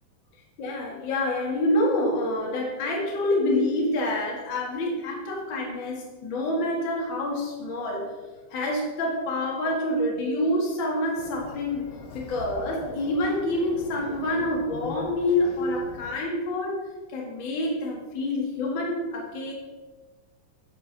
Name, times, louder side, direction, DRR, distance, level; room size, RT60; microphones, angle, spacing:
voice 1, 0.6-8.1 8.5-19.5, left 1 dB, 40° left, -2 dB, 2.4 m, -27 dB
sound 1, 11.2-16.2, left 6 dB, 70° left, 1.5 m, -40 dB
10.5 x 7.6 x 4.1 m, 1.3 s
omnidirectional pair, 3.5 m